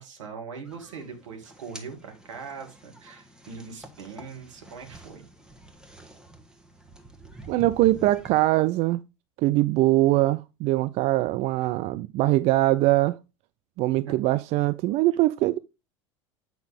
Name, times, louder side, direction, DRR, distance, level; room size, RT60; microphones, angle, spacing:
voice 1, 0.0-5.3 14.1-14.2, right 5 dB, 70° right, 2.1 m, -41 dB
sound 1, 0.6-8.5, right 2 dB, 5° right, 1.4 m, -47 dB
voice 2, 7.5-9.0 9.4-13.2 13.8-15.6, right 17 dB, 40° right, 0.4 m, -22 dB
8.2 x 5.8 x 3.6 m
figure-of-eight pair, 75°, 16 cm